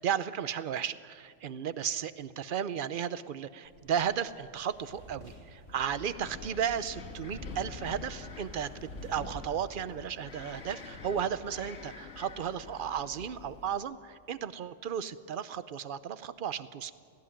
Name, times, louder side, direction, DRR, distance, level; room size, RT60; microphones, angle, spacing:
voice 1, 0.0-16.9, right 8 dB, 50° right, 14 dB, 0.8 m, -34 dB
sound 1, 3.6-9.9 10.2-11.0, right 1 dB, 80° right, 6.0 m, -54 dB
Wind, 5.7-13.8, left 3 dB, 90° left, 2.0 m, -46 dB
17.0 x 16.0 x 9.9 m, 2.2 s
omnidirectional pair, 1.3 m